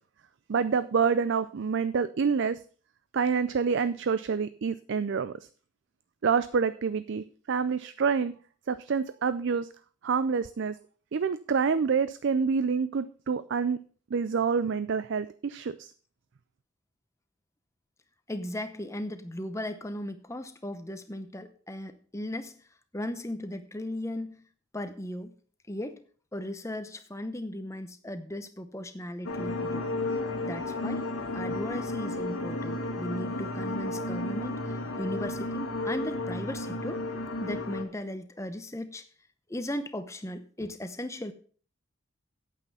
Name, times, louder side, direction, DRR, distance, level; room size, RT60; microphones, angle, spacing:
voice 1, 0.5-2.6 3.1-5.4 6.2-8.4 8.7-9.7 10.0-10.8 11.1-13.8 14.1-15.9, right 5 dB, 55° right, 14 dB, 0.4 m, -27 dB
voice 2, 18.3-22.6 22.9-24.4 24.7-25.3 25.7-26.0 26.3-29.9 30.4-31.1 31.3-37.0 37.4-39.1 39.5-41.3, left 1 dB, 15° left, 10 dB, 0.8 m, -37 dB
sound 1, 29.2-37.8, left 2 dB, 75° left, 1.7 m, -33 dB
9.0 x 8.4 x 5.5 m, 0.43 s
head